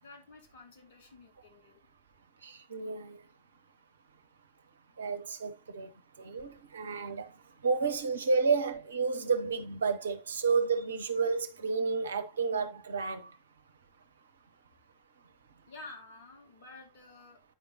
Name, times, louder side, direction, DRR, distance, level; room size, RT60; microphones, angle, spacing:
voice 1, 0.0-1.8 15.7-17.4, left 3 dB, 55° left, 2.5 m, -51 dB
voice 2, 2.4-3.2 5.0-5.9 6.2-7.3 7.6-13.3, right 4 dB, 70° right, 0.9 m, -31 dB
9.1 x 5.2 x 2.8 m
figure-of-eight pair, 90°, 0 cm